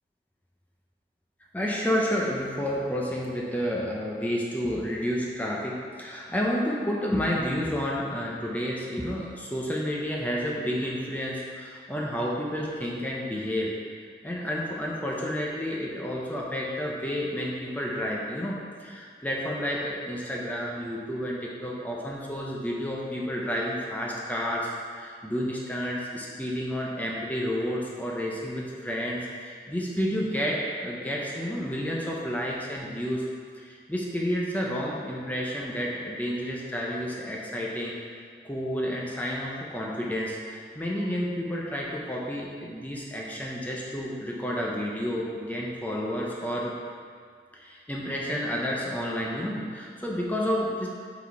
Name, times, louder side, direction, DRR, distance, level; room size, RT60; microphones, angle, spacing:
voice 1, 1.5-33.2 33.6-38.0 38.4-46.7 47.5-50.9, equal, 10° left, -3 dB, 0.6 m, -30 dB
5.3 x 4.1 x 5.7 m, 2.1 s
head